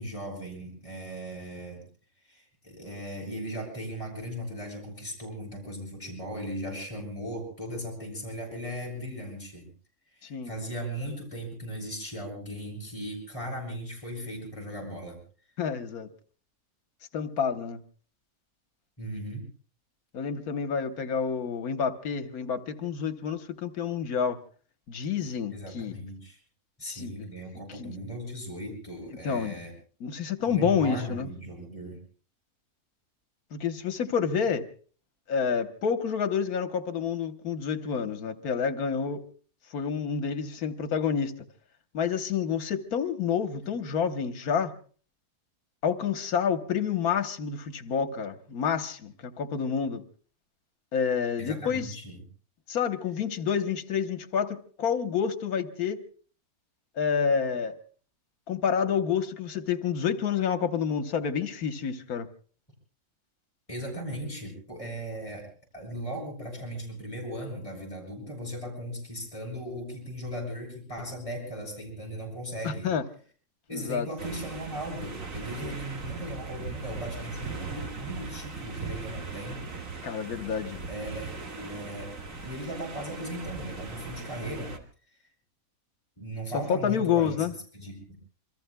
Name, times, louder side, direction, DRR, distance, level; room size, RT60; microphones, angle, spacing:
voice 1, 0.0-1.8 2.2-9.7 10.1-15.2 19.0-19.5 25.5-26.4 26.8-29.7 30.4-32.0 51.4-52.2 63.7-65.5 65.7-72.9 73.7-79.6 80.9-82.1 82.4-84.8 86.2-87.4 87.7-88.2, equal, 20° left, -1 dB, 6.4 m, -37 dB
voice 2, 15.6-16.1 17.1-17.8 20.1-24.4 24.9-25.9 26.8-27.3 27.8-27.9 29.2-29.6 30.0-31.3 33.5-34.7 35.3-39.2 39.7-41.3 41.9-44.7 45.8-50.0 50.9-51.9 52.7-56.0 57.0-57.8 58.5-62.3 72.6-73.0 73.7-74.1 80.0-80.9 86.5-87.5, left 7 dB, 85° left, 9 dB, 1.6 m, -28 dB
sound 1, 74.2-84.8, right 4 dB, 60° right, 2.1 m, -39 dB
27.0 x 23.5 x 2.2 m, 0.41 s
omnidirectional pair, 1.5 m